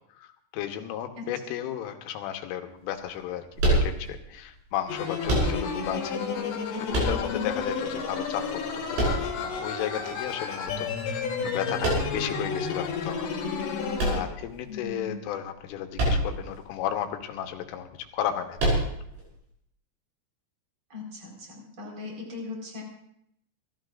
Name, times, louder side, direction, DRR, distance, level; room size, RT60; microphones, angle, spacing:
voice 1, 0.2-6.2 6.8-13.3 14.1-18.8, left 10 dB, 85° left, 5 dB, 3.6 m, -34 dB
sound 1, 3.6-4.4 5.2-5.9 6.9-7.6 8.9-9.7 11.8-12.4 13.9-14.8 15.9-16.5 16.8-16.9 18.6-19.2, right 1 dB, 60° right, 8.3 m, -26 dB
sound 2, 4.9-14.2, left 5 dB, 65° left, 3.9 m, -31 dB
voice 2, 14.7-15.3 20.9-22.8, left 4 dB, 30° right, -1 dB, 4.7 m, -38 dB
28.0 x 13.5 x 2.5 m, 0.73 s
omnidirectional pair, 5.6 m